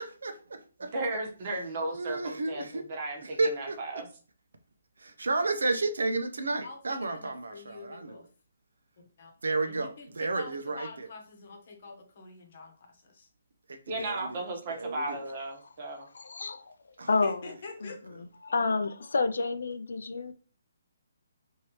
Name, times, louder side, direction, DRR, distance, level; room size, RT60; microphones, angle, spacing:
voice 1, 0.0-0.9 1.9-2.8 3.2-3.8 5.0-8.2 9.4-11.1 13.7-14.4 14.7-15.2 17.0-17.1, right 3 dB, 85° right, 0.6 m, -32 dB
voice 2, 0.9-4.1 13.9-16.1, right 2 dB, 40° right, 1.1 m, -35 dB
voice 3, 6.6-8.3 9.2-9.3 9.7-13.3 17.2-18.0, left 4 dB, 50° left, 0.9 m, -46 dB
voice 4, 15.6-16.7 17.1-17.4 17.8-20.3, left 4 dB, 75° left, 0.4 m, -30 dB
3.1 x 2.7 x 3.0 m
hypercardioid pair, 150°, 0 cm